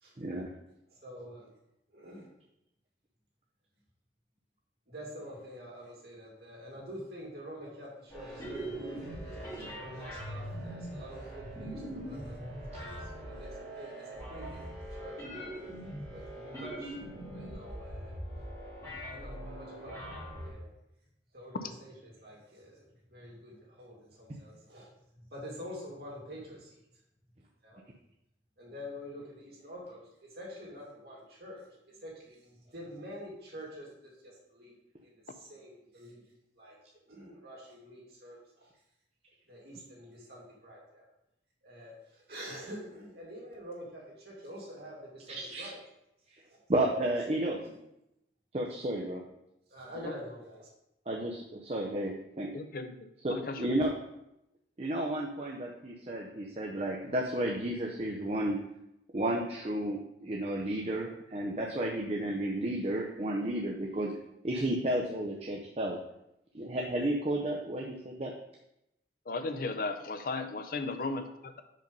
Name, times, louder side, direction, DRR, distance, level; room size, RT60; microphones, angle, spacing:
voice 1, 0.2-0.5 45.3-45.7 46.7-47.6 48.5-49.2 51.1-52.5 53.2-53.9 54.8-58.6 59.1-64.2 64.4-66.0 66.5-68.3, right 1 dB, 35° right, 0 dB, 0.6 m, -32 dB
voice 2, 0.9-1.5 1.9-2.3 4.9-14.7 15.0-15.5 16.1-16.9 17.3-18.2 19.1-20.7 21.3-22.8 23.1-24.9 25.3-26.7 27.6-27.8 28.6-30.0 30.3-33.9 34.2-34.7 35.0-36.2 36.5-36.8 37.1-38.7 39.5-41.0 41.6-45.8 46.5-46.6 47.2-47.3 47.6-47.8 49.7-50.7, equal, 60° right, -4 dB, 2.4 m, -47 dB
sound 1, 8.1-20.5, equal, 20° left, 2.3 m, -42 dB
voice 3, 52.5-53.8 69.3-71.6, left 3 dB, 55° left, 9 dB, 0.5 m, -36 dB
5.4 x 5.2 x 5.3 m, 0.85 s
head